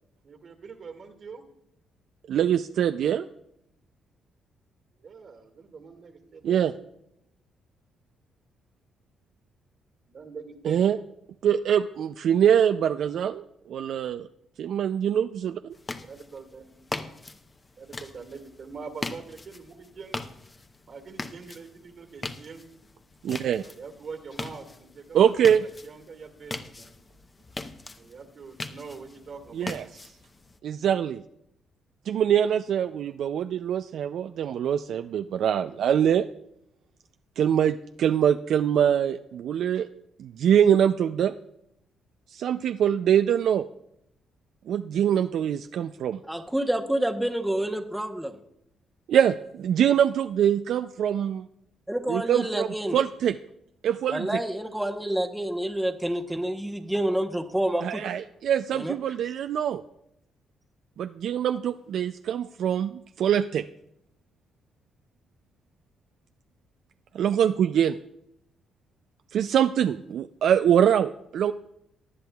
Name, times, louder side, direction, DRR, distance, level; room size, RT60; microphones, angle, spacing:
voice 1, 0.2-1.4 5.0-6.7 10.1-10.8 16.0-17.1 17.8-20.2 20.9-22.6 23.7-27.0 27.9-29.8, right 5 dB, 55° right, 6 dB, 1.8 m, -44 dB
voice 2, 2.3-3.3 6.4-6.7 10.6-11.0 11.4-14.3 14.6-15.6 23.2-23.6 25.1-25.6 29.5-29.8 30.6-31.2 32.1-36.3 37.4-39.9 40.2-41.3 42.3-43.6 44.7-46.2 49.1-51.4 52.1-52.7 52.9-53.3 53.8-54.3 57.8-59.8 61.0-63.6 67.1-68.0 69.3-71.5, right 9 dB, 70° right, 9 dB, 0.3 m, -24 dB
sound 1, 15.7-30.6, left 3 dB, 25° left, 0.8 m, -41 dB
voice 3, 46.3-48.4 51.9-53.0 54.1-58.0 58.7-58.9, right 1 dB, 5° right, 4 dB, 0.9 m, -28 dB
18.5 x 10.5 x 2.3 m, 0.78 s
cardioid pair, 90°, 0 cm